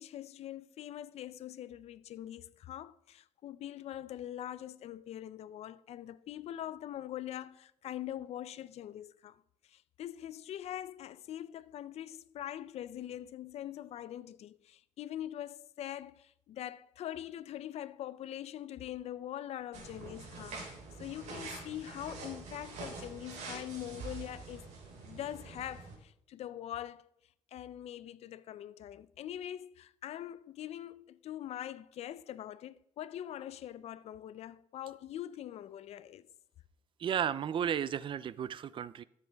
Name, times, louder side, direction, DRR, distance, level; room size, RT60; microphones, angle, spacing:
voice 1, 0.0-9.4 9.7-20.7 21.0-24.7 25.0-27.1 27.5-36.3, left 11 dB, 65° left, 0.5 m, -43 dB
sound 1, 19.7-26.0, right 3 dB, 85° right, 3.6 m, -46 dB
voice 2, 37.0-39.0, right 8 dB, 45° right, 0.4 m, -33 dB
13.0 x 7.5 x 3.4 m
cardioid pair, 130°, 12 cm